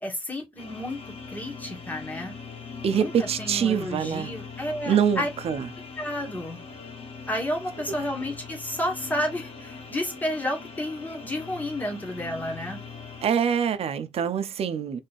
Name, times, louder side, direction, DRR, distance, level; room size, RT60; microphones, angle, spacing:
voice 1, 0.0-1.0 1.3-2.3 2.9-3.1 3.4-5.3 6.0-6.6 7.3-12.8, left 1 dB, 15° left, 2.1 m, -31 dB
sound 1, 0.6-13.3, left 5 dB, 70° left, 1.8 m, -41 dB
voice 2, 2.8-4.3 4.9-5.7 13.2-15.0, right 8 dB, 85° right, 0.8 m, -25 dB
4.3 x 3.5 x 3.4 m
wide cardioid pair, 120°, 10 cm